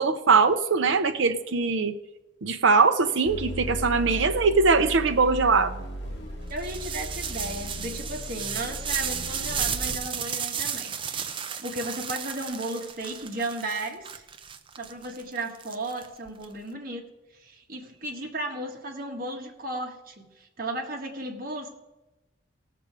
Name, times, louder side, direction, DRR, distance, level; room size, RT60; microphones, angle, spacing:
voice 1, 0.0-1.9 2.4-5.8, right 4 dB, 70° right, 7 dB, 0.6 m, -21 dB
sound 1, 3.2-10.0, right 1 dB, 60° left, 2.6 m, -36 dB
voice 2, 6.5-14.3 14.8-17.0 17.3-21.7, right 2 dB, 45° right, 2 dB, 1.6 m, -35 dB
sound 2, 6.6-16.4, right 7 dB, 25° right, 0.5 m, -34 dB
17.0 x 6.9 x 4.8 m, 0.99 s
head